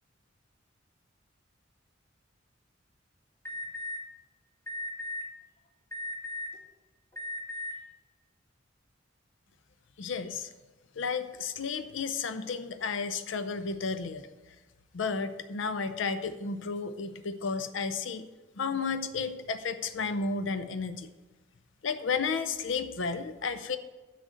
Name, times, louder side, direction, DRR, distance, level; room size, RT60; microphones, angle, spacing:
Alarm, 3.4-4.0 4.7-5.2 5.9-6.6 7.1-7.7, left 2 dB, 15° left, 2.2 m, -36 dB
voice 1, 10.0-10.5 11.0-14.3 14.9-18.3 18.6-21.1 21.8-23.8, left 5 dB, 75° left, 11 dB, 0.6 m, -32 dB
6.8 x 6.3 x 7.6 m, 1.2 s
head